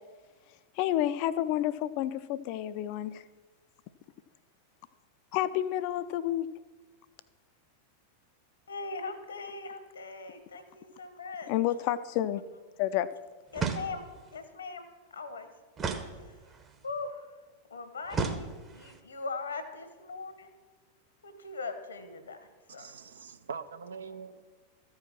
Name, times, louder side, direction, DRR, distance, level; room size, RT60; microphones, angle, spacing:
voice 1, 0.8-3.2 5.3-6.5 11.5-12.4 12.8-13.1, left 12 dB, 45° left, 0.4 m, -29 dB
voice 2, 8.7-11.5 13.5-14.0 14.3-15.5 16.2-16.4 16.8-17.3 17.7-20.5 21.2-22.5 22.7-22.9, left 4 dB, 70° left, 1.1 m, -40 dB
sound 1, 13.5-14.3 15.8-16.7 18.1-19.0, right 5 dB, 25° right, 0.9 m, -34 dB
voice 3, 22.7-24.4, right 6 dB, 65° right, 0.5 m, -43 dB
13.5 x 4.8 x 6.0 m
figure-of-eight pair, 90°, 0 cm